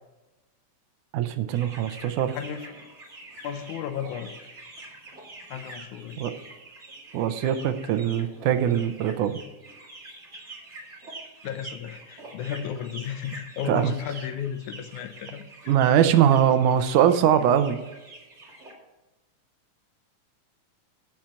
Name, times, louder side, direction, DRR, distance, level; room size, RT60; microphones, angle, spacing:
voice 1, 1.1-2.4 6.2-6.3 7.1-9.4 13.6-13.9 15.7-17.8, right 9 dB, 85° right, 10 dB, 2.2 m, -22 dB
sound 1, 1.5-18.7, right 2 dB, 25° right, 2.0 m, -46 dB
voice 2, 2.3-2.7 3.4-4.3 5.5-6.2 11.4-15.5, left 8 dB, 80° left, 8 dB, 2.2 m, -34 dB
7.7 x 7.4 x 7.1 m, 1.1 s
omnidirectional pair, 3.6 m